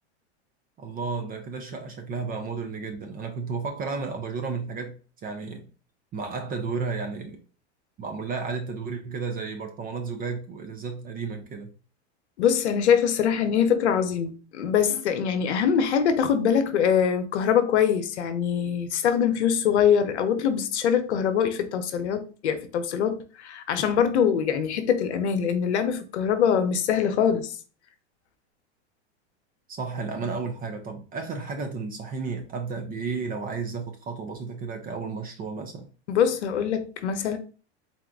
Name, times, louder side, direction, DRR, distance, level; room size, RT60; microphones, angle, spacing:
voice 1, 0.8-5.7 6.1-7.4 8.0-11.7 29.7-35.9, right 4 dB, 25° right, 0.6 m, -33 dB
voice 2, 12.4-27.6 36.1-37.4, left 8 dB, 80° left, 0.8 m, -23 dB
4.1 x 2.4 x 3.4 m
hypercardioid pair, 120°, 33 cm